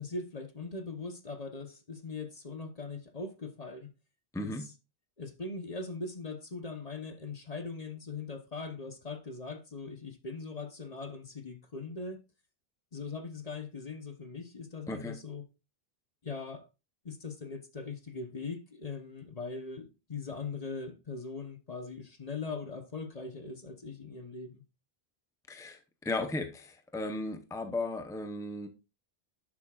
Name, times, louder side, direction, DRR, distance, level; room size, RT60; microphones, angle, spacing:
voice 1, 0.0-3.9 4.4-4.5 5.2-12.2 12.9-15.4 16.2-16.7 17.0-24.6, left 4 dB, 40° left, 1.0 m, -40 dB
voice 2, 4.3-4.6 14.9-15.2 25.5-28.7, left 2 dB, 5° left, 0.8 m, -36 dB
11.5 x 7.1 x 2.4 m
omnidirectional pair, 1.0 m